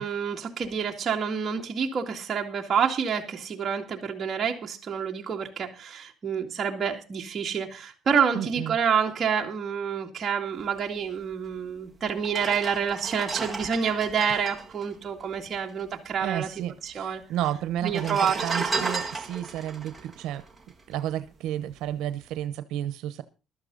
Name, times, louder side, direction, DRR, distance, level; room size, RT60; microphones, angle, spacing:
voice 1, 0.0-16.5 16.8-17.2 17.8-18.9, right 7 dB, 30° right, 2.1 m, -28 dB
voice 2, 8.3-8.8 16.2-20.4 20.9-23.2, right 12 dB, 85° right, 0.9 m, -32 dB
sound 1, 11.5-11.6 12.2-15.9 16.1-16.2 16.4-17.1 17.8-21.3 21.7-21.9, right 4 dB, 5° right, 1.6 m, -34 dB
15.0 x 12.5 x 4.0 m
cardioid pair, 170°, 0 cm